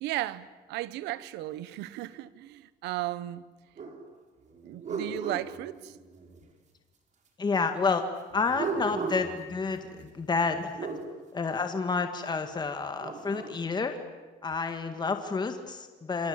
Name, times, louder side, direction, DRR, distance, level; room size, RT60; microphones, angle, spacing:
voice 1, 0.0-3.4 4.6-6.0, right 15 dB, 90° right, 1.1 m, -35 dB
sound 1, 3.8-4.0 4.4-6.4 8.3-11.0 12.7-13.6, right 4 dB, 45° right, 5.8 m, -37 dB
voice 2, 7.4-8.1 8.3-10.9 11.3-14.0 14.4-16.3, left 4 dB, 25° left, 2.0 m, -29 dB
28.5 x 25.5 x 8.0 m
cardioid pair, 110°, 17 cm